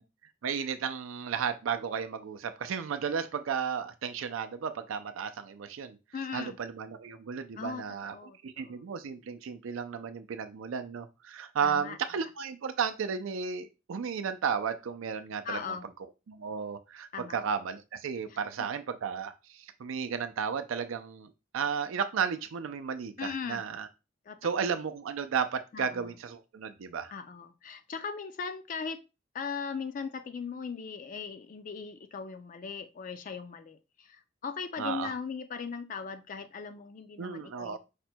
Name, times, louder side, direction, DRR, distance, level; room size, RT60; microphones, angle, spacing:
voice 1, 0.4-6.0 6.3-8.2 8.4-15.8 16.3-23.9 24.4-27.1 34.8-35.1 37.2-37.8, right 6 dB, 80° right, 10 dB, 0.4 m, -34 dB
voice 2, 6.1-6.6 7.6-7.8 8.1-8.4 8.6-8.8 11.6-12.0 15.4-15.9 17.1-17.4 18.3-18.4 23.2-23.6 24.3-24.4 25.7-26.1 27.1-29.0 29.3-37.8, left 5 dB, 40° left, 10 dB, 0.3 m, -38 dB
5.0 x 2.2 x 4.3 m, 0.28 s
head